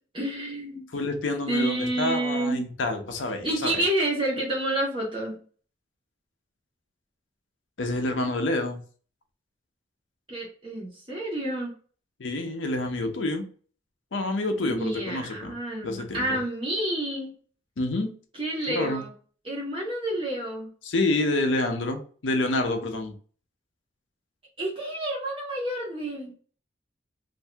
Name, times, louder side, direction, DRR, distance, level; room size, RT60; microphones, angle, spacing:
voice 1, 0.1-0.9 1.5-2.7 3.4-5.4 10.3-11.7 14.6-17.3 18.3-19.1 19.4-20.7 24.6-26.3, right 1 dB, 30° right, -3 dB, 1.2 m, -29 dB
voice 2, 0.9-3.8 7.8-8.8 12.2-13.5 14.1-15.5 15.8-16.4 17.8-18.1 18.7-19.0 20.8-23.1, left 2 dB, 90° left, 5 dB, 0.6 m, -28 dB
2.7 x 2.6 x 3.3 m, 0.42 s
head